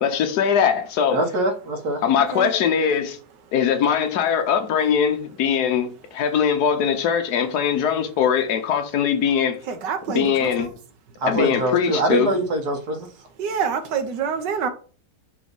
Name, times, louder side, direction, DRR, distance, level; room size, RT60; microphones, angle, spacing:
voice 1, 0.0-1.2 2.0-3.2 3.5-9.6 10.1-10.7 11.3-12.3, left 7 dB, 70° left, 1.4 m, -21 dB
voice 2, 1.1-2.0 11.2-13.1, right 1 dB, 65° right, 1.6 m, -23 dB
voice 3, 9.7-10.7 13.4-14.7, right 6 dB, 85° right, 1.6 m, -26 dB
6.1 x 3.1 x 5.3 m
omnidirectional pair, 1.8 m